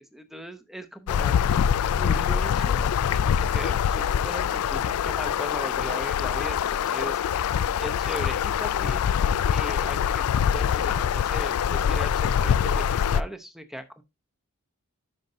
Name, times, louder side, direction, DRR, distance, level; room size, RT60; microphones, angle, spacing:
voice 1, 0.0-1.4 1.9-7.2 7.8-9.1 9.5-14.0, equal, ahead, 0.7 m, -38 dB
sound 1, 1.1-13.2, left 8 dB, 75° left, 0.3 m, -24 dB
11.0 x 5.3 x 2.6 m
head